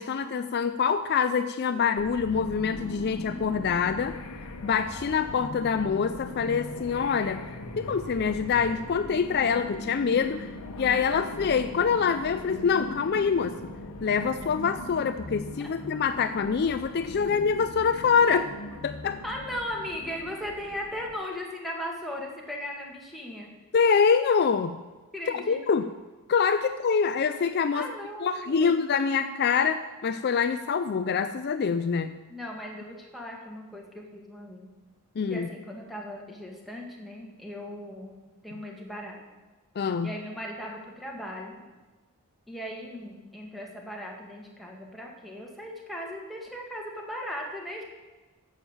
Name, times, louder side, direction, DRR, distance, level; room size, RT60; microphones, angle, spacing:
voice 1, 0.0-4.1 4.6-7.4 7.8-10.5 10.8-13.5 14.0-18.5 18.8-19.2 23.7-24.8 25.5-25.9 26.3-27.9 28.2-32.1 35.2-35.5 39.8-40.1, left 6 dB, 45° left, 10 dB, 0.4 m, -25 dB
sound 1, 2.0-21.2, left 2 dB, 90° left, 1.1 m, -40 dB
voice 2, 19.2-23.5 25.1-25.8 27.7-28.8 32.3-34.7 35.3-38.2 38.4-39.2 40.0-41.6 42.5-47.8, equal, ahead, -2 dB, 1.8 m, -38 dB
9.9 x 7.2 x 7.2 m, 1.2 s
head